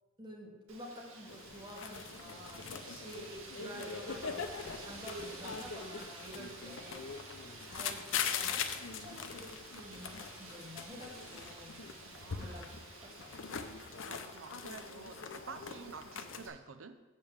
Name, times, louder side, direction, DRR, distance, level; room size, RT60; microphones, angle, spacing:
voice 1, 0.2-7.1 7.6-11.8 12.4-12.7 13.0-13.3, equal, 25° right, -3 dB, 1.9 m, -49 dB
Wind, 0.7-16.5, right 3 dB, 85° right, 1.8 m, -52 dB
sound 1, 1.3-16.5, left 6 dB, 65° left, 0.6 m, -42 dB
voice 2, 2.7-3.1 6.5-6.6 12.1-12.7 14.1-17.0, right 5 dB, 70° right, 9 dB, 0.6 m, -50 dB
7.5 x 5.3 x 7.3 m, 1.2 s
head